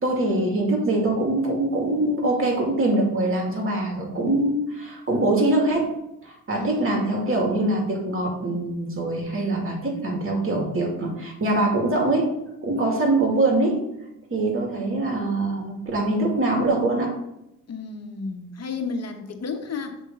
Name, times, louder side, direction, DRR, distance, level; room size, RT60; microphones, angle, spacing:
voice 1, 0.0-5.9 6.2-12.3 12.6-13.8 14.3-17.2, right 2 dB, 40° right, 0 dB, 2.4 m, -23 dB
voice 2, 6.5-7.2 17.7-20.0, left 4 dB, 45° left, 6 dB, 1.1 m, -32 dB
7.7 x 3.6 x 5.2 m, 0.85 s
supercardioid pair, 70°, 35 cm